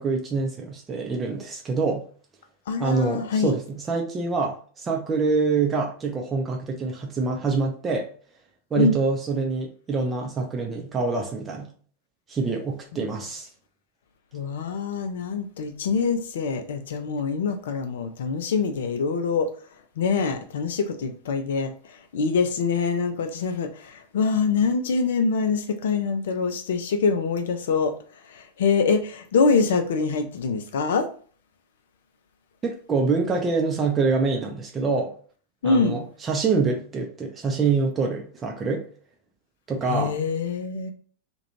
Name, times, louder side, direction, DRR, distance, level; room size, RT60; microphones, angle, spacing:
voice 1, 0.0-2.0 2.8-8.1 8.7-11.7 12.3-13.5 32.6-35.1 35.6-38.9 39.7-40.1, right 4 dB, 20° right, 1 dB, 0.5 m, -25 dB
voice 2, 2.7-3.5 8.8-9.0 13.0-13.2 14.3-19.5 20.0-21.7 22.1-27.9 28.3-31.1 35.6-36.0 39.9-40.9, left 5 dB, 60° left, 7 dB, 0.4 m, -24 dB
2.4 x 2.2 x 3.0 m, 0.43 s
figure-of-eight pair, 90°, 0 cm